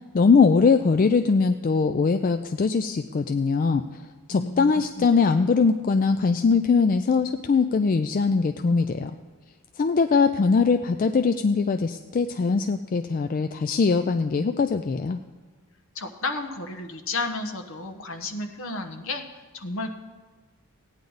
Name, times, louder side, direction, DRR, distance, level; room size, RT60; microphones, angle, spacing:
voice 1, 0.1-3.8 4.3-9.1 9.8-15.2, left 4 dB, 40° left, 8 dB, 0.3 m, -21 dB
voice 2, 4.3-5.1 15.9-19.2 19.5-19.9, left 3 dB, 60° left, 5 dB, 1.0 m, -32 dB
16.0 x 9.6 x 4.0 m, 1.4 s
head